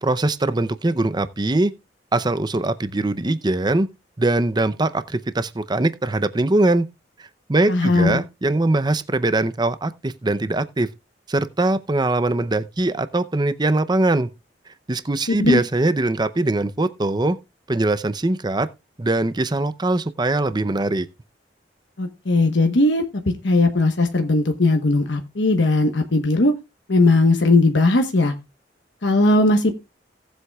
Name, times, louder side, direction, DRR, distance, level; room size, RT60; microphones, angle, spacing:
voice 1, 0.0-1.7 2.1-3.9 4.2-6.9 7.2-10.9 11.3-14.3 14.9-17.4 17.7-18.7 19.0-21.1, right 2 dB, 25° right, 0.6 m, -21 dB
voice 2, 7.7-8.2 15.4-15.6 22.0-23.0 23.4-26.5 26.9-28.3 29.0-29.7, left 2 dB, 80° left, 1.1 m, -18 dB
17.5 x 7.9 x 2.3 m
head